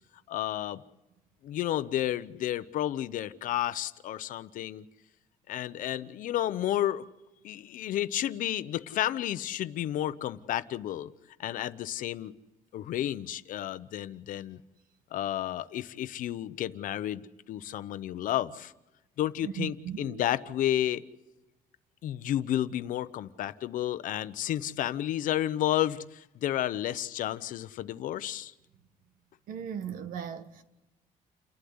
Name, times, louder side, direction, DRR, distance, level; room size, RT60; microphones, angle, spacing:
voice 1, 0.3-0.8 1.4-4.8 5.5-7.0 7.4-11.1 11.4-12.3 12.7-14.6 15.1-18.7 19.2-21.0 22.0-28.5, left 12 dB, 75° left, 0.8 m, -31 dB
voice 2, 19.4-20.2 29.5-30.6, right 8 dB, 85° right, 1.6 m, -37 dB
29.5 x 12.0 x 9.5 m
cardioid pair, 145°, 14 cm